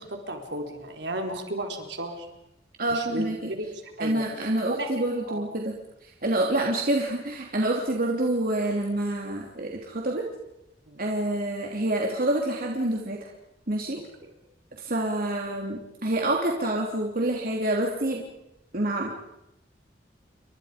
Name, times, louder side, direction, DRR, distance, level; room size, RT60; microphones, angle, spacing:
voice 1, 0.0-2.3 2.9-4.9 5.3-5.4 10.9-11.0, right 1 dB, 70° right, 3 dB, 4.2 m, -34 dB
voice 2, 2.8-3.5 4.0-5.7 6.0-10.2 11.0-13.3 13.7-14.0 14.8-18.2 18.7-19.1, right 1 dB, 55° right, -1 dB, 3.1 m, -27 dB
30.0 x 24.0 x 5.2 m, 0.87 s
head